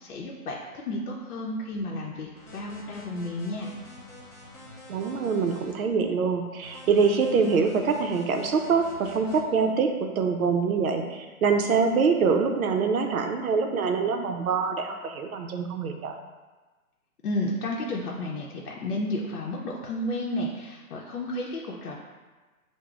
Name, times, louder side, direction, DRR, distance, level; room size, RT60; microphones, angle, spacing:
voice 1, 0.0-3.7 17.2-22.0, left 1 dB, 75° left, -2 dB, 0.7 m, -32 dB
sound 1, 2.3-5.7 6.6-9.4, left 2 dB, 40° left, 1.1 m, -47 dB
voice 2, 4.9-16.2, right 5 dB, 70° right, 4 dB, 0.6 m, -25 dB
6.5 x 2.2 x 2.4 m, 1.3 s
hypercardioid pair, 170°, 45 cm